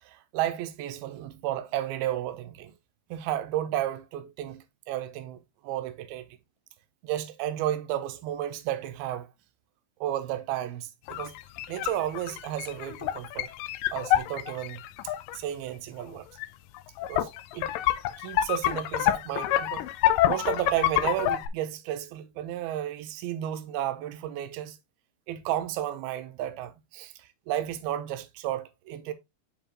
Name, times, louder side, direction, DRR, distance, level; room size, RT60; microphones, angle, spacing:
voice 1, 0.0-2.7 3.1-5.4 5.6-6.3 7.0-9.3 10.0-11.3 11.7-13.5 13.9-14.8 15.3-16.3 17.1-17.7 18.2-19.9 20.3-24.8 25.3-29.1, right 12 dB, 90° right, 2.6 m, -32 dB
sound 1, 11.1-15.4 16.4-16.5 16.8-21.5, left 13 dB, 80° left, 1.9 m, -27 dB
7.2 x 5.1 x 2.9 m
omnidirectional pair, 4.3 m